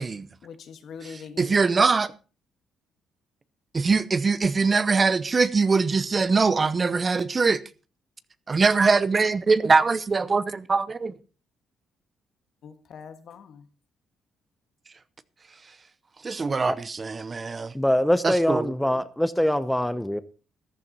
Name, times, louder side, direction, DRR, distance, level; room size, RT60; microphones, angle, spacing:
voice 1, 0.4-1.6 12.6-13.7, left 6 dB, 65° left, 1.5 m, -42 dB
voice 2, 1.4-2.1 3.7-7.6 8.5-11.1 16.2-17.7 18.2-18.7, right 4 dB, 35° right, 0.7 m, -22 dB
voice 3, 17.7-20.2, left 1 dB, 5° left, 0.7 m, -23 dB
14.0 x 11.0 x 4.1 m
cardioid pair, 90°, 0 cm